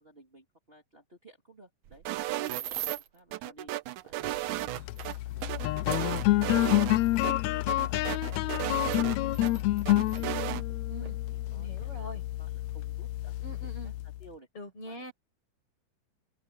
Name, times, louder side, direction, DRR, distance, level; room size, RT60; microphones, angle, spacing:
voice 1, 0.0-2.0 2.4-3.7 4.0-5.9 6.3-8.8 9.3-9.7 10.2-13.3 13.8-13.9 14.2-14.5 14.8-15.0, right 1 dB, 20° right, 3.3 m, -57 dB
sound 1, 1.8-3.2 3.9-7.3 8.1-8.2 8.8-10.3 11.1-11.2 11.5-11.9, right 12 dB, 65° right, 2.0 m, -42 dB
sound 2, 2.1-3.0 3.3-5.1 5.5-7.0 7.2-7.3 7.7-9.5 9.9-10.6, right 16 dB, 85° right, 2.1 m, -34 dB
sound 3, 4.7-14.3, left 16 dB, 80° left, 1.7 m, -29 dB
voice 2, 11.5-12.2 13.4-13.9 14.6-15.1, equal, 45° left, 9.0 m, -43 dB
open air
omnidirectional pair, 3.5 m